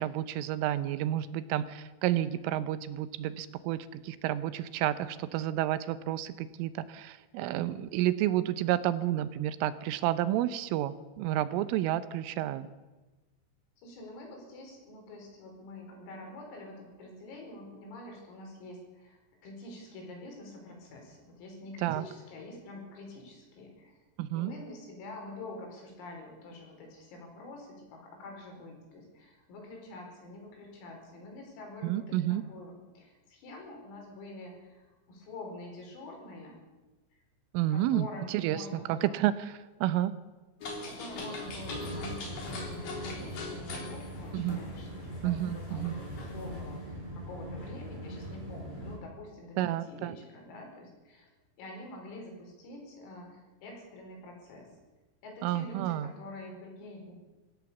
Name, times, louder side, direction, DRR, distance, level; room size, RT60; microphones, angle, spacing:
voice 1, 0.0-12.7 21.8-22.0 24.2-24.5 31.8-32.4 37.5-39.5 39.8-40.1 44.3-44.6 45.2-45.9 49.6-50.2 55.4-56.1, right 13 dB, 80° right, 14 dB, 3.3 m, -30 dB
voice 2, 13.8-23.9 24.3-36.6 37.1-37.2 37.7-39.1 40.8-45.9 46.2-51.3 51.6-54.7 55.2-57.1, left 2 dB, 80° left, 1 dB, 7.8 m, -46 dB
sound 1, 40.6-46.8, left 2 dB, 50° left, 5.2 m, -42 dB
sound 2, 41.4-49.0, equal, 10° right, 6.3 m, -41 dB
25.0 x 16.5 x 7.1 m, 1.2 s
omnidirectional pair, 5.9 m